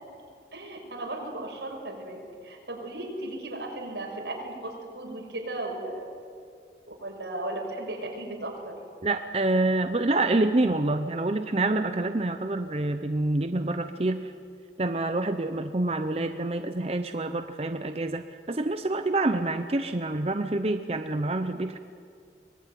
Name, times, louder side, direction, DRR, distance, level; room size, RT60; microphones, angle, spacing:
voice 1, 0.5-6.1 6.9-8.8, right 1 dB, 85° right, 1 dB, 6.1 m, -36 dB
voice 2, 9.0-14.3 14.8-21.8, right 2 dB, 35° right, 8 dB, 0.7 m, -27 dB
24.0 x 20.0 x 9.3 m, 2.3 s
head